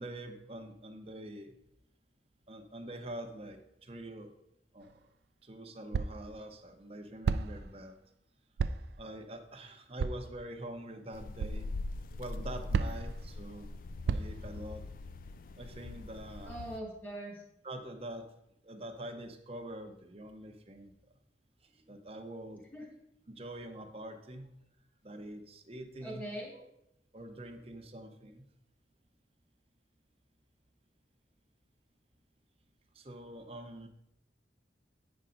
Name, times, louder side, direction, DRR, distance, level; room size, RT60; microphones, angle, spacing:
voice 1, 0.0-1.6 2.5-4.3 4.7-4.9 5.4-8.0 9.0-11.7 12.2-13.7 14.1-14.8 15.6-16.6 17.6-18.3 18.6-20.9 21.6-22.6 23.3-24.5 25.0-26.7 27.1-28.4 32.9-33.9, right 1 dB, 35° right, 5 dB, 0.8 m, -45 dB
sound 1, 4.8-4.9 5.9-6.3 7.2-7.7 8.6-9.0 10.0-10.3 11.4-11.6 12.7-13.2 14.1-14.5, right 5 dB, 65° right, 0.3 m, -32 dB
sound 2, 11.1-16.8, left 2 dB, 50° left, 0.4 m, -42 dB
voice 2, 16.5-17.4 22.7-22.9 26.0-26.5, right 1 dB, 10° left, -1 dB, 1.7 m, -41 dB
8.7 x 5.7 x 3.9 m, 0.80 s
head